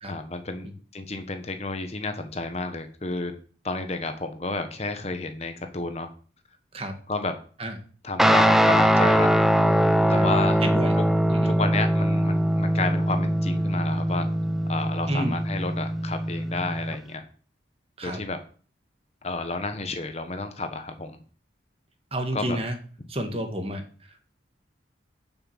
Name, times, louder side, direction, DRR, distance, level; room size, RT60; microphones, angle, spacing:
voice 1, 0.1-0.7 0.9-3.3 3.6-6.1 7.1-7.3 8.0-9.3 10.1-10.6 11.4-14.3 14.7-17.2 18.0-18.4 19.2-21.2 22.3-22.6, left 3 dB, 35° left, 8 dB, 1.0 m, -31 dB
Guitar, 8.2-17.0, equal, ahead, 0.4 m, -22 dB
voice 2, 10.6-11.0 11.3-11.6 15.1-15.4 18.0-18.2 22.1-22.8 23.1-24.2, right 1 dB, 30° right, 6 dB, 1.5 m, -30 dB
7.6 x 6.1 x 7.2 m, 0.42 s
head